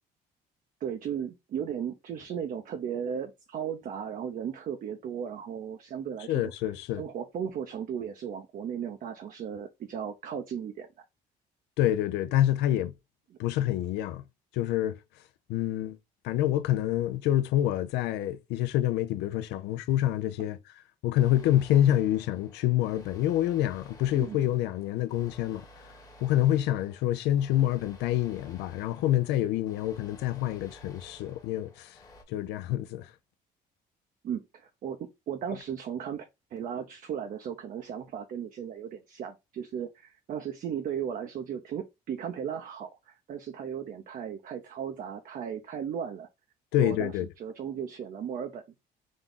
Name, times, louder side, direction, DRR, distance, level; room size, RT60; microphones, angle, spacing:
voice 1, 0.8-6.5 7.0-10.9 24.2-24.4 34.2-36.2 36.5-46.3 46.8-47.1 47.4-48.6, right 8 dB, 55° right, 0.6 m, -36 dB
voice 2, 6.3-7.0 11.8-12.9 13.4-14.2 14.5-15.0 15.5-16.0 16.2-20.6 21.0-25.6 26.2-32.0 32.3-33.1 46.7-47.3, left 13 dB, 85° left, 0.4 m, -27 dB
sound 1, 21.2-32.2, left 1 dB, 20° left, 1.0 m, -53 dB
3.7 x 2.4 x 3.7 m
cardioid pair, 110°, 17 cm